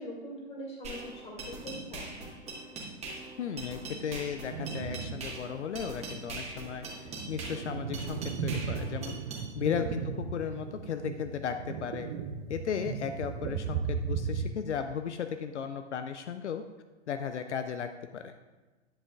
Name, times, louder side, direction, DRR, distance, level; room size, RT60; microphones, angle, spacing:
voice 1, 0.0-2.1 9.8-10.0, equal, 20° left, -2 dB, 2.2 m, -42 dB
sound 1, 0.8-9.4, right 3 dB, 20° right, 1.6 m, -41 dB
voice 2, 3.4-12.1 12.5-16.6 17.1-18.3, left 7 dB, 75° left, 8 dB, 0.5 m, -35 dB
sound 2, 4.5-5.4 5.8-5.9 6.6-14.5, right 6 dB, 35° right, 0.5 m, -36 dB
11.0 x 7.2 x 2.4 m, 1.2 s
figure-of-eight pair, 115°, 35 cm